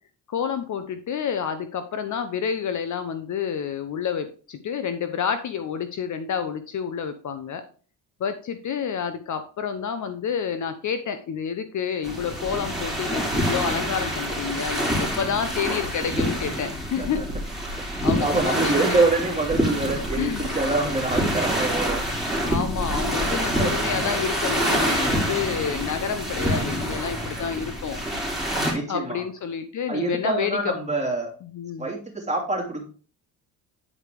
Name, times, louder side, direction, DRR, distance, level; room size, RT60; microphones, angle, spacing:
voice 1, 0.3-7.6 8.2-17.2 17.8-19.0 20.2-20.4 22.5-28.0 28.9-30.7 31.4-31.8, left 7 dB, 45° left, 10 dB, 0.8 m, -29 dB
sound 1, 12.0-28.7, equal, ahead, 3.2 m, -26 dB
voice 2, 18.2-22.1 23.5-23.8 24.9-25.3 28.7-29.2 29.9-31.3 31.8-32.8, right 3 dB, 15° right, -1 dB, 2.8 m, -26 dB
9.7 x 4.7 x 3.4 m, 0.40 s
cardioid pair, 85°, 41 cm